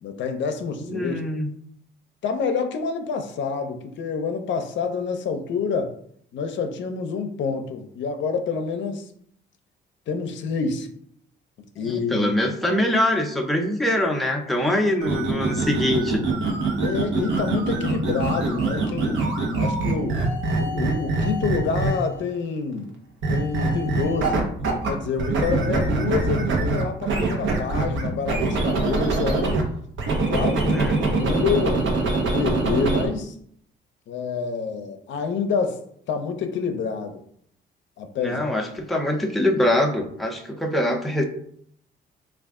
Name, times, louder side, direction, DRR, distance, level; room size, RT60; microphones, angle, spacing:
voice 1, 0.0-1.2 2.2-5.9 6.3-9.1 10.1-10.9 11.8-12.3 16.8-19.2 19.6-20.2 20.6-22.9 23.3-24.4 24.9-29.6 30.3-30.8 31.1-31.9 32.3-33.3 34.1-35.8 36.1-37.2 38.0-38.5, left 5 dB, 70° left, 6 dB, 0.5 m, -27 dB
voice 2, 0.8-1.5 11.8-16.2 30.5-31.0 38.2-41.2, left 1 dB, ahead, 1 dB, 0.5 m, -23 dB
sound 1, 15.0-22.2 23.2-24.9 25.2-29.6 30.0-33.1, right 3 dB, 70° right, 0.8 m, -24 dB
3.3 x 2.4 x 3.5 m, 0.66 s
cardioid pair, 90°, 20 cm